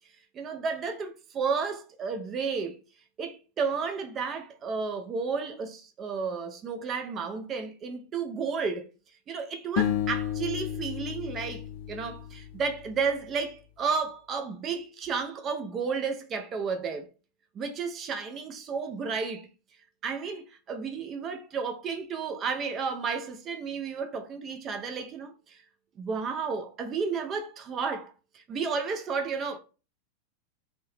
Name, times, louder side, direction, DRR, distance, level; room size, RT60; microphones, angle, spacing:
voice 1, 0.3-2.8 3.2-8.9 9.3-17.1 17.5-19.5 20.0-25.6 26.0-29.6, right 5 dB, 30° right, 0.4 m, -32 dB
sound 1, 9.8-13.0, left 10 dB, 55° left, 0.4 m, -32 dB
2.6 x 2.1 x 3.0 m
figure-of-eight pair, 90°, 0 cm